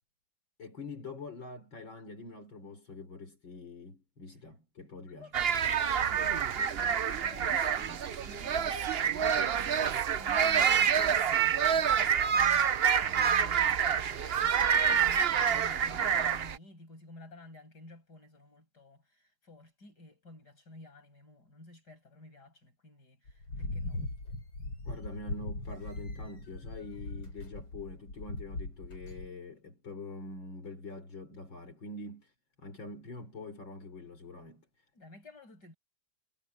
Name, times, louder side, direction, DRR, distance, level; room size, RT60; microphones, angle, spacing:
voice 1, 0.6-5.3 24.9-32.3 32.6-34.7, left 2 dB, 70° left, 5.5 m, -45 dB
voice 2, 5.2-24.0 34.9-35.8, left 2 dB, 55° left, 7.6 m, -52 dB
sound 1, 5.3-16.6, right 8 dB, 85° right, 0.5 m, -27 dB
sound 2, 23.3-29.3, left 2 dB, 90° left, 7.2 m, -39 dB
omnidirectional pair, 2.2 m